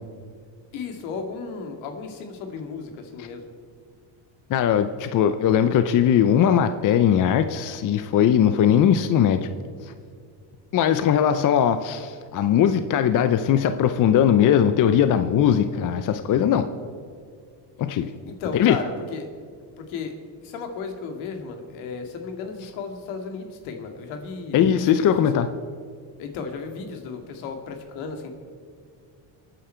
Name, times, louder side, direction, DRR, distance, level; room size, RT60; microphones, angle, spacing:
voice 1, 0.7-3.4 18.2-19.3 19.8-24.6 24.9-25.4 26.2-28.3, left 5 dB, 80° left, 5 dB, 2.3 m, -34 dB
voice 2, 4.5-9.5 9.8-9.9 10.7-16.7 17.8-18.1 18.5-18.8 24.5-25.5, left 9 dB, 40° left, 10 dB, 0.7 m, -20 dB
27.5 x 9.2 x 4.5 m, 2.1 s
cardioid pair, 120°, 47 cm